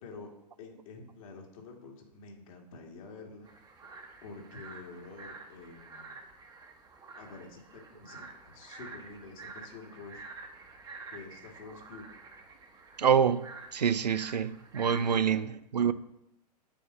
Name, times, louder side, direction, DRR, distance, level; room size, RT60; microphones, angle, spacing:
voice 1, 0.0-0.3 0.6-3.5 4.2-6.2 7.2-10.2 11.1-12.1 15.0-15.4, left 4 dB, 55° left, 1.9 m, -48 dB
sound 1, 3.4-15.2, right 3 dB, 20° right, 1.2 m, -49 dB
voice 2, 13.0-13.4 13.7-15.9, right 7 dB, 80° right, 0.5 m, -26 dB
8.3 x 4.1 x 6.6 m
figure-of-eight pair, 105°, 21 cm